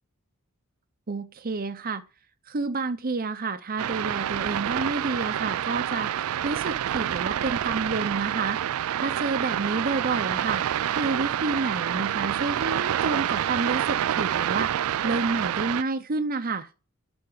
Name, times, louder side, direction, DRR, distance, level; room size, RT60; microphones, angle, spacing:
voice 1, 1.1-2.0 2.5-8.6 9.0-10.6 11.0-16.7, right 3 dB, 45° right, 0.7 m, -29 dB
sound 1, 3.8-15.8, right 10 dB, 90° right, 0.3 m, -27 dB
11.5 x 4.4 x 5.5 m
head